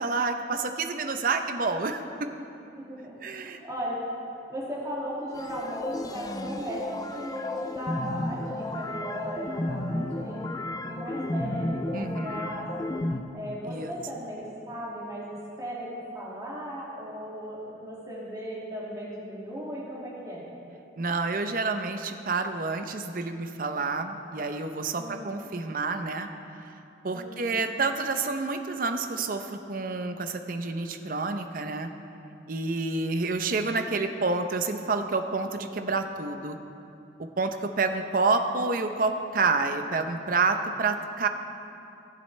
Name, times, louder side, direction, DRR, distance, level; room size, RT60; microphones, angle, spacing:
voice 1, 0.0-2.3 3.2-3.6 11.9-12.5 13.7-13.9 21.0-26.3 27.0-31.9 32.5-36.6 37.4-41.3, right 3 dB, 50° right, 7 dB, 0.6 m, -28 dB
voice 2, 2.8-4.0 4.5-10.5 10.8-13.0 13.3-20.4 24.9-25.5 27.1-27.7, equal, 20° right, -7 dB, 2.1 m, -37 dB
sound 1, 5.3-13.2, left 1 dB, 20° left, 0.4 m, -33 dB
17.5 x 7.6 x 3.2 m, 2.7 s
head